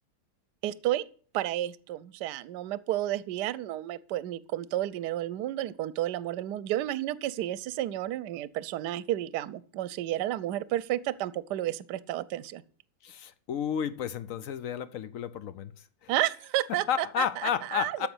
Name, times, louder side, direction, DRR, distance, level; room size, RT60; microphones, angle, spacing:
voice 1, 0.6-1.1 1.3-12.6 16.1-18.1, right 13 dB, 70° right, 1.2 m, -31 dB
voice 2, 13.0-16.1 16.9-18.1, left 9 dB, 65° left, 0.8 m, -32 dB
13.5 x 5.2 x 7.8 m
omnidirectional pair, 2.0 m